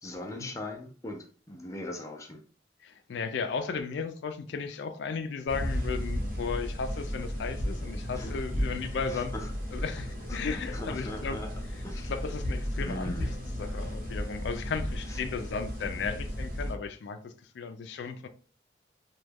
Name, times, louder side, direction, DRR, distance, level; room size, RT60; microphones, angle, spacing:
voice 1, 0.0-2.4 8.1-8.3 9.1-9.5 9.8-9.9 10.3-11.5 11.8-12.1 12.8-13.4 15.1-15.2, left 1 dB, 15° left, 0.5 m, -40 dB
voice 2, 2.8-9.3 9.7-11.4 12.0-13.3 13.6-18.3, left 5 dB, 80° left, 0.4 m, -35 dB
sound 1, 5.5-16.7, equal, 50° right, 0.9 m, -34 dB
3.0 x 2.2 x 3.4 m
head